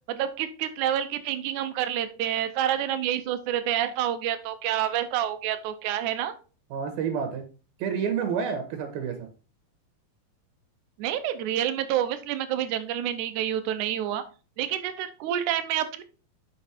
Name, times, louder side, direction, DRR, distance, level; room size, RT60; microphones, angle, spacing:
voice 1, 0.1-6.3 11.0-14.2 14.6-16.0, right 11 dB, 70° right, 10 dB, 2.0 m, -28 dB
voice 2, 6.7-7.4 7.8-9.3, right 7 dB, 90° right, 7 dB, 3.2 m, -29 dB
6.4 x 6.3 x 4.4 m, 0.34 s
omnidirectional pair, 4.2 m